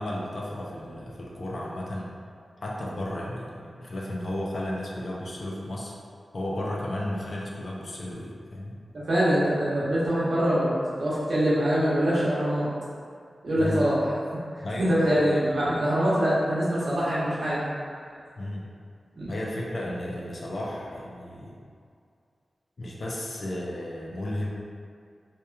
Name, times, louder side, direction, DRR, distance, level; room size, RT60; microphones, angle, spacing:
voice 1, 0.0-2.1 2.6-5.9 6.3-8.7 13.6-13.9 14.6-15.2 18.4-18.7 19.3-21.5 22.8-24.5, left 1 dB, 50° left, -3 dB, 0.4 m, -33 dB
voice 2, 9.1-10.7 11.0-12.7 13.4-14.1 14.8-17.6 19.2-19.3, equal, 70° right, -9 dB, 0.8 m, -24 dB
2.9 x 2.2 x 2.3 m, 2.3 s
wide cardioid pair, 125°, 0 cm